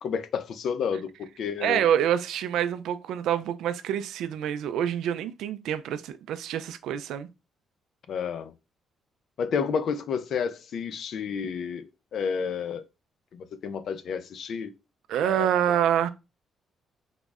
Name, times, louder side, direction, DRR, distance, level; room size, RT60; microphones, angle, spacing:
voice 1, 0.0-1.8 8.1-8.5 9.4-12.8 13.3-14.7 15.2-15.5, left 6 dB, 65° left, 0.5 m, -30 dB
voice 2, 1.6-7.3 15.1-16.1, right 10 dB, 85° right, 0.3 m, -26 dB
3.7 x 2.0 x 3.5 m
cardioid pair, 90°, 0 cm